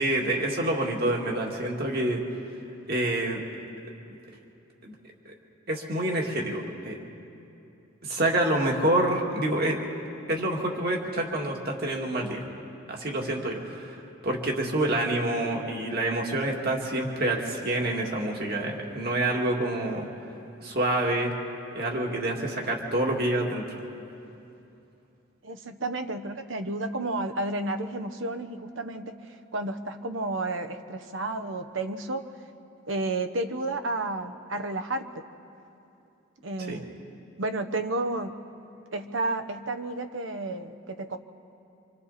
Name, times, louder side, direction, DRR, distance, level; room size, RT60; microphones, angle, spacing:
voice 1, 0.0-2.2 2.9-3.4 4.8-4.9 5.3-5.4 5.7-7.0 8.0-9.8 10.3-12.4 12.9-14.0 14.2-20.1 20.6-21.3 21.7-23.8 36.7-36.8, right 1 dB, 50° right, 0 dB, 2.3 m, -27 dB
voice 2, 25.4-32.3 32.9-35.1 36.4-36.9 37.4-38.4 38.9-41.2, right 2 dB, 75° right, 8 dB, 1.0 m, -31 dB
26.0 x 26.0 x 4.2 m, 2.8 s
head